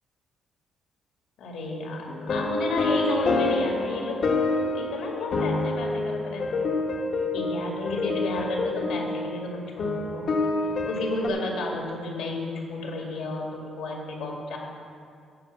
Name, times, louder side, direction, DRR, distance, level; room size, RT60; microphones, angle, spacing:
voice 1, 1.4-4.2 4.6-6.7 7.3-10.3 10.8-14.6, left 2 dB, 80° left, -1 dB, 2.2 m, -32 dB
sound 1, 2.1-11.3, left 3 dB, 60° left, 1.2 m, -27 dB
14.0 x 4.8 x 6.8 m, 2.4 s
cardioid pair, 90°, 0 cm